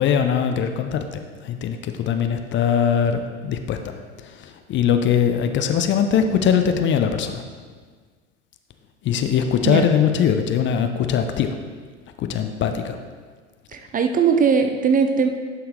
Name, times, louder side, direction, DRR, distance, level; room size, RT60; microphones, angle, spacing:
voice 1, 0.0-4.0 4.2-7.4 9.0-11.5 12.2-13.0, left 8 dB, 30° left, 6 dB, 0.6 m, -21 dB
voice 2, 13.7-15.3, right 6 dB, 20° right, 6 dB, 0.5 m, -19 dB
11.0 x 5.7 x 3.2 m, 1.6 s
figure-of-eight pair, 70°, 38 cm